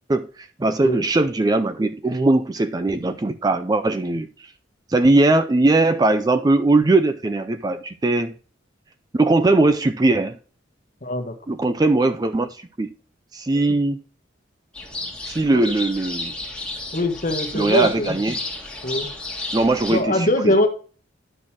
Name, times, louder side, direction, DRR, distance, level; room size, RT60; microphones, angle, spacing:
voice 1, 0.1-4.5 4.9-8.3 9.1-10.4 11.5-12.9 13.3-14.0 15.3-16.3 17.5-18.4 19.5-20.7, right 2 dB, 20° right, 0.4 m, -20 dB
voice 2, 11.0-11.3 15.5-15.7 16.9-18.2 18.8-19.1 19.9-20.7, left 1 dB, 45° left, 1.2 m, -22 dB
sound 1, 14.7-20.0, left 2 dB, 5° left, 1.7 m, -32 dB
10.0 x 6.4 x 2.9 m
head